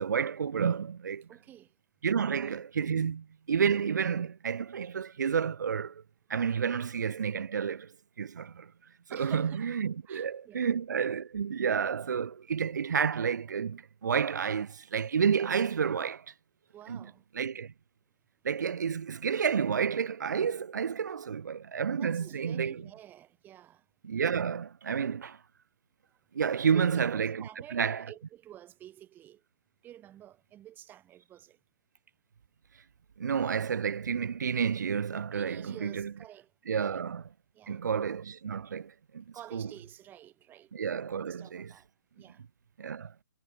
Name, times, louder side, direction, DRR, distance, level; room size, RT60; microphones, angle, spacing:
voice 1, 0.0-1.2 2.0-6.0 6.3-7.9 8.2-8.7 9.1-16.3 16.9-17.0 17.3-17.7 18.4-22.8 24.0-25.4 26.3-27.4 27.7-28.0 33.2-36.1 36.7-37.2 37.7-39.2 39.5-39.6 40.7-41.7 42.8-43.1, right 7 dB, 60° right, 1.6 m, -30 dB
voice 2, 1.3-1.7 2.4-2.6 9.1-9.7 10.0-10.7 16.7-17.2 21.9-23.8 26.7-29.4 29.8-31.6 35.3-36.5 36.8-37.0 37.5-37.8 39.3-40.7 41.0-41.9 42.2-42.4, right 12 dB, 20° right, 4.6 m, -50 dB
figure-of-eight pair, 130°, 11 cm